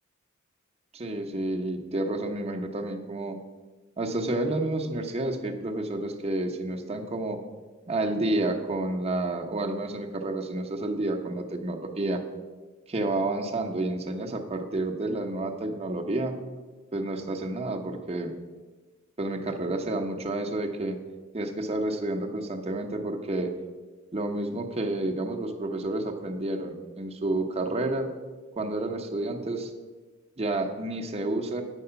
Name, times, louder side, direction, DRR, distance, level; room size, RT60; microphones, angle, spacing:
voice 1, 0.9-3.4 4.0-7.4 7.9-12.2 12.9-16.4 16.9-18.3 19.2-21.0 21.3-23.5 24.1-28.1 28.6-29.7 30.4-31.6, right 2 dB, 30° right, 4 dB, 0.9 m, -30 dB
9.1 x 4.9 x 6.8 m, 1.3 s
head